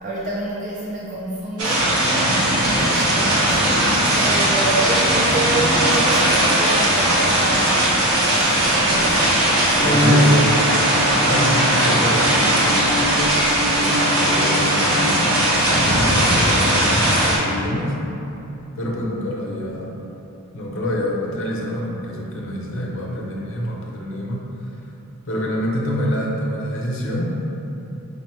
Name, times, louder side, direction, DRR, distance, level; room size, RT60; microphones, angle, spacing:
voice 1, 0.0-9.2, right 1 dB, 35° right, -5 dB, 0.3 m, -28 dB
sound 1, 1.6-17.4, right 1 dB, 90° right, 1.0 m, -18 dB
Bowed string instrument, 9.7-15.7, equal, 60° right, 1.2 m, -23 dB
voice 2, 9.8-10.6 11.2-12.8 13.4-15.1 15.6-17.9 18.8-19.9 20.5-24.4 25.3-27.3, equal, 60° left, -2 dB, 0.7 m, -26 dB
5.2 x 2.1 x 4.3 m, 2.9 s
head